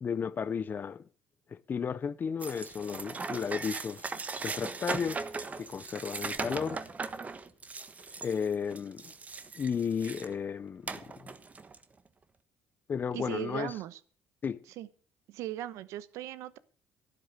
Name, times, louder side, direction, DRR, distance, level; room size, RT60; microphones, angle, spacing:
voice 1, 0.0-1.0 1.5-4.1 4.4-5.2 5.6-6.8 8.2-9.1 9.5-11.3 12.9-13.8 14.4-14.6, left 6 dB, 40° left, 0.6 m, -34 dB
sound 1, 2.4-10.4 10.8-11.8, right 4 dB, 30° right, 1.4 m, -39 dB
voice 2, 13.1-14.0 14.8-14.9 15.3-16.6, right 13 dB, 80° right, 1.0 m, -38 dB
12.0 x 11.0 x 6.6 m
supercardioid pair, 80°, 5 cm